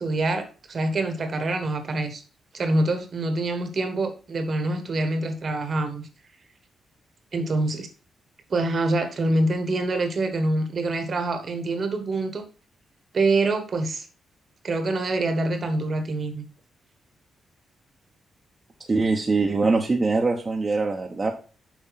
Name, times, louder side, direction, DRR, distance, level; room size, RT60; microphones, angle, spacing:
voice 1, 0.0-2.2 2.5-6.1 7.3-7.9 8.5-12.4 13.1-14.1 14.6-16.4, right 2 dB, 45° right, 9 dB, 1.3 m, -25 dB
voice 2, 18.9-21.3, right 3 dB, 30° right, 1 dB, 0.9 m, -23 dB
7.3 x 5.2 x 4.1 m, 0.36 s
cardioid pair, 110°, 0 cm